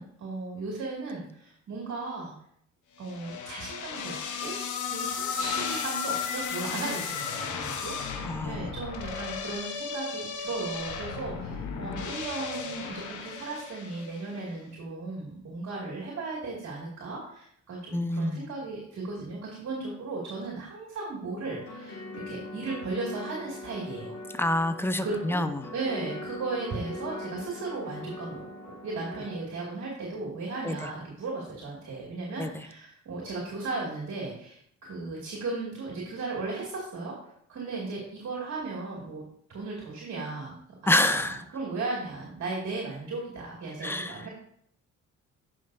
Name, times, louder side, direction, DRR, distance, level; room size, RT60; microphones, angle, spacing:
voice 1, 0.0-2.3 3.0-24.2 25.0-25.5 25.7-39.2 39.5-40.5 40.8-44.3, right 3 dB, 60° right, -3 dB, 2.2 m, -36 dB
sound 1, 3.1-14.3, left 5 dB, 75° left, 1.0 m, -34 dB
voice 2, 8.2-8.7 17.9-18.5 24.3-25.6 30.6-30.7 32.4-32.5 40.9-41.4 43.8-44.2, left 1 dB, 10° left, 10 dB, 0.6 m, -27 dB
sound 2, 21.4-29.4, left 2 dB, 50° left, 2.6 m, -41 dB
10.0 x 5.6 x 2.6 m, 0.67 s
cardioid pair, 90°, 30 cm